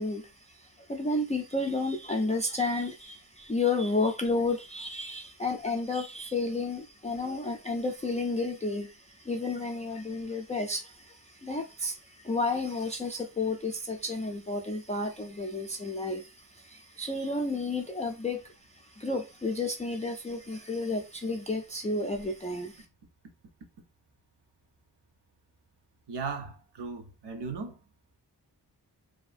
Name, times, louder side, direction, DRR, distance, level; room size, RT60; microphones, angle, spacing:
voice 1, 0.0-22.8, left 2 dB, 20° left, 0.3 m, -32 dB
voice 2, 26.1-27.8, right 4 dB, 80° right, 0.7 m, -37 dB
2.8 x 2.5 x 2.4 m
wide cardioid pair, 100°, 40 cm